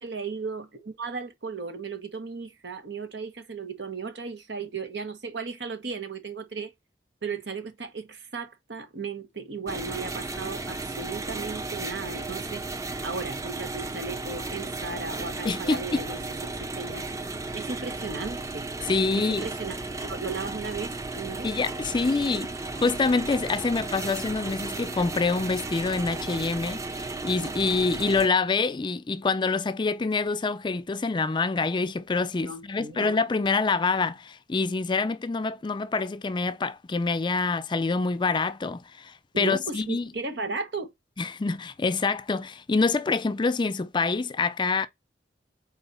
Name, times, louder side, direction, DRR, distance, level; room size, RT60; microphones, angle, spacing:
voice 1, 0.0-6.7 7.2-12.6 13.0-17.1 17.5-18.7 19.2-19.7 20.1-21.5 32.4-33.1 39.3-40.9, right 4 dB, 80° right, 1.3 m, -36 dB
sound 1, 9.7-28.3, right 3 dB, 20° right, 0.6 m, -34 dB
voice 2, 15.4-16.0 18.9-19.5 21.4-40.1 41.2-44.9, left 4 dB, 25° left, 0.4 m, -26 dB
4.3 x 4.0 x 5.5 m
head